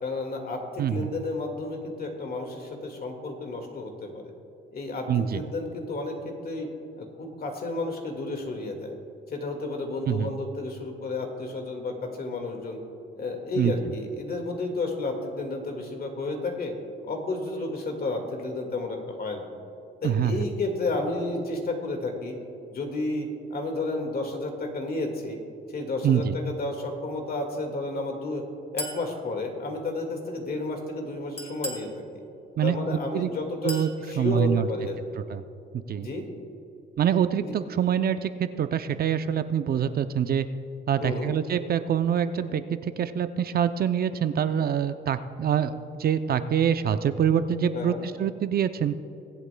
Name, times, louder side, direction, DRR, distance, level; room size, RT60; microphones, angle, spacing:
voice 1, 0.0-4.3 4.7-6.7 7.0-8.9 9.3-12.8 13.1-16.7 17.0-19.5 20.0-22.4 22.7-25.4 25.7-28.4 28.7-32.0 32.6-35.2 35.9-36.3 37.4-37.5 41.0-41.4 47.7-48.0, left 2 dB, 50° left, 3 dB, 1.9 m, -32 dB
voice 2, 5.1-5.4 10.1-10.3 13.6-13.7 20.0-20.4 26.0-26.4 32.6-32.8 33.1-33.3 33.6-33.9 34.2-34.7 35.3-35.4 35.7-36.1 37.0-40.5 40.9-48.9, right 8 dB, 50° right, 11 dB, 0.5 m, -25 dB
Chink clink, 28.8-29.1 31.4-31.9 33.7-33.9, left 1 dB, 30° left, 1.8 m, -35 dB
23.0 x 8.1 x 2.2 m, 2.7 s
cardioid pair, 90°, 20 cm